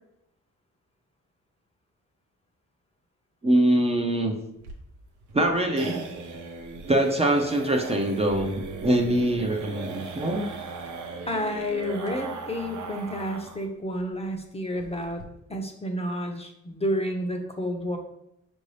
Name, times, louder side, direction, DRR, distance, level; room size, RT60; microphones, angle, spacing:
voice 1, 3.4-4.4 5.3-6.0 6.9-10.5, right 1 dB, 20° right, 2 dB, 0.6 m, -23 dB
sound 1, 4.6-13.7 14.0-14.1 14.4-14.5 14.8-15.2, right 3 dB, 75° right, 0.8 m, -38 dB
voice 2, 11.3-15.2 15.5-18.0, equal, 20° left, 3 dB, 0.7 m, -30 dB
5.2 x 2.7 x 3.3 m, 0.81 s
cardioid pair, 75°, 30 cm